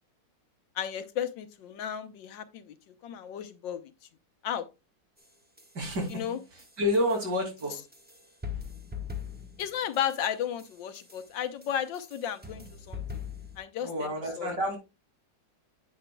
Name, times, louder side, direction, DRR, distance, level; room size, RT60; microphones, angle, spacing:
voice 1, 0.8-2.7 3.0-3.9 4.4-4.6 6.1-6.4 9.6-13.0 13.6-14.1 14.4-14.5, left 9 dB, 85° left, 1.5 m, -34 dB
sound 1, 5.2-13.6, left 6 dB, 5° right, 0.8 m, -43 dB
voice 2, 5.7-6.2 6.5-7.8 13.8-14.8, left 1 dB, 65° right, 3.3 m, -29 dB
9.9 x 8.3 x 2.3 m
omnidirectional pair, 2.0 m